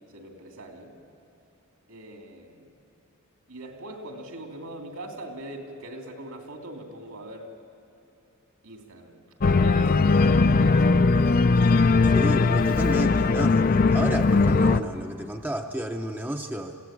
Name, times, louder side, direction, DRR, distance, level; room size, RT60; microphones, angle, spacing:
voice 1, 0.1-1.0 1.9-2.7 3.5-7.5 8.6-9.2 9.5-11.4 13.1-13.2, right 1 dB, 70° right, 3 dB, 2.9 m, -41 dB
Organ, 9.4-14.8, left 3 dB, 40° left, 0.5 m, -19 dB
voice 2, 12.0-16.8, right 1 dB, 10° right, 4 dB, 0.6 m, -32 dB
26.0 x 16.0 x 8.8 m, 2.9 s
head